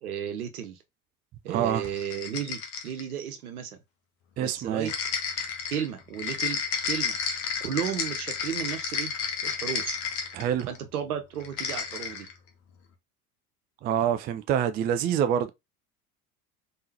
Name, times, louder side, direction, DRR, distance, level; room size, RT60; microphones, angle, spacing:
voice 1, 0.0-0.8 1.4-3.8 4.4-5.1 5.7-6.6 6.8-7.2 7.6-9.1 9.4-10.0 10.7-12.3, right 9 dB, 75° right, 1.0 m, -34 dB
voice 2, 1.5-1.9 4.4-4.9 10.3-10.7 13.8-15.5, right 9 dB, 25° right, 0.3 m, -26 dB
sound 1, 1.8-3.1 4.8-10.8 11.4-12.3, left 6 dB, 55° left, 1.2 m, -31 dB
4.0 x 3.7 x 2.8 m
figure-of-eight pair, 70°, 44 cm